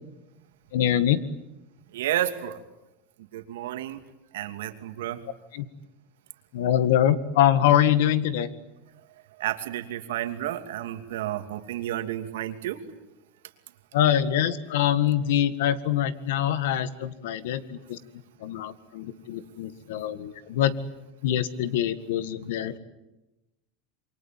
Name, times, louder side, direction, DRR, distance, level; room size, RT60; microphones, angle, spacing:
voice 1, 0.7-1.2 5.5-5.7 6.5-8.5 13.9-18.0 18.4-20.7 21.2-22.8, left 11 dB, 75° left, 13 dB, 1.8 m, -24 dB
voice 2, 1.9-2.6 3.3-4.0 4.3-5.2 9.4-12.8, right 12 dB, 90° right, 8 dB, 2.6 m, -31 dB
27.5 x 24.0 x 9.2 m, 0.97 s
supercardioid pair, 155°, 0 cm